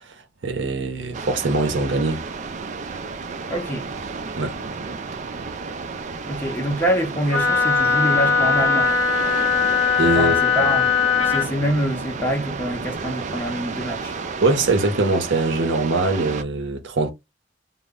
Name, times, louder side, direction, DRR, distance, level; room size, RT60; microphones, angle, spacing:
voice 1, 0.4-2.2 4.4-4.6 10.0-10.4 14.4-17.1, right 2 dB, 70° right, 0.6 m, -22 dB
sound 1, 1.1-16.4, right 4 dB, 40° right, 0.3 m, -32 dB
voice 2, 3.5-3.9 6.3-8.9 10.2-10.9 11.2-14.2, equal, 10° left, 0.7 m, -25 dB
Wind instrument woodwind instrument, 7.3-11.5, left 5 dB, 85° left, 0.6 m, -19 dB
2.1 x 2.0 x 3.5 m
head